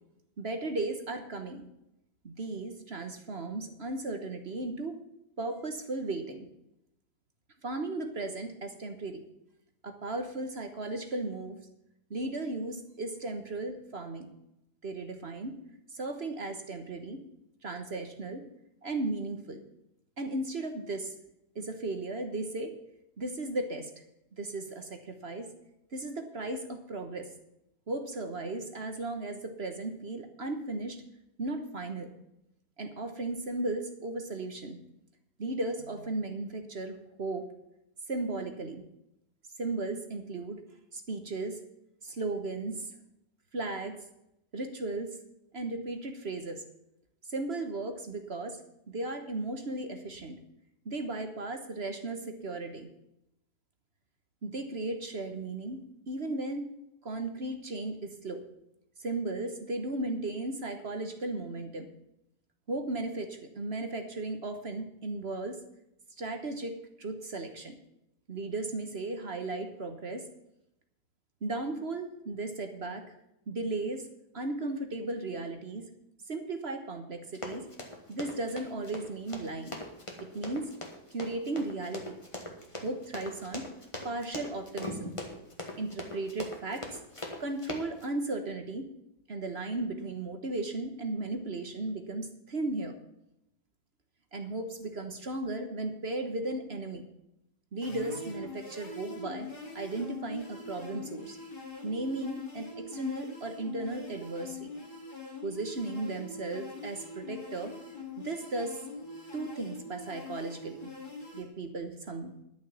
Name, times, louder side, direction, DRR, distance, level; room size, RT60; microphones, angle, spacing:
voice 1, 0.4-1.7 2.2-5.0 5.4-6.5 7.6-9.2 9.8-11.6 12.1-14.3 14.8-15.6 15.9-17.2 17.6-18.5 18.8-19.6 20.2-21.1 21.5-22.8 23.2-23.9 24.4-25.5 25.9-27.3 27.9-31.0 31.4-32.1 32.8-34.8 35.4-37.5 38.1-38.8 39.6-40.6 40.9-41.6 42.0-42.9 43.5-44.0 44.5-45.2 45.5-46.6 47.3-48.6 48.9-50.4 50.8-52.9 54.4-56.7 57.0-58.4 59.0-61.9 62.7-65.6 66.2-67.7 68.3-70.3 71.4-73.0 73.5-74.1 74.3-75.9 76.3-77.6 78.1-79.8 80.2-80.7 81.1-82.2 82.8-83.6 84.0-85.1 85.8-87.0 87.4-88.9 89.3-92.9 94.3-97.1 97.7-99.5 99.7-101.4 101.8-104.7 105.4-107.7 108.2-108.8 109.3-110.9 111.3-112.3, right 2 dB, 40° right, 7 dB, 1.4 m, -35 dB
Run, 77.3-88.0, left 1 dB, 20° left, 1.9 m, -40 dB
sound 1, 97.8-111.4, left 3 dB, 80° left, 3.2 m, -43 dB
11.5 x 7.1 x 7.1 m, 0.83 s
omnidirectional pair, 1.7 m